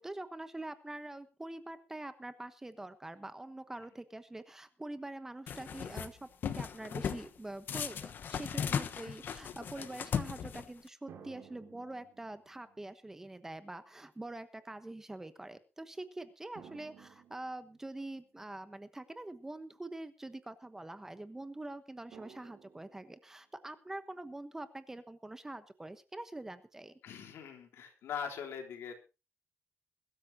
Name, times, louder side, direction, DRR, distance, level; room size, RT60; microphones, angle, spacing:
voice 1, 0.0-27.0, right 2 dB, 10° right, 11 dB, 1.1 m, -45 dB
sound 1, 5.5-6.1 6.4-7.3 7.7-10.9, left 7 dB, 50° left, 1.2 m, -37 dB
voice 2, 8.5-9.2 9.8-9.9 27.0-28.9, left 7 dB, 80° left, 4 dB, 3.7 m, -43 dB
sound 2, 11.1-12.8 13.8-13.9 16.6-18.3 22.1-23.4, right 8 dB, 65° right, 3.4 m, -56 dB
22.5 x 13.0 x 2.8 m, 0.30 s
cardioid pair, 160°, 4 cm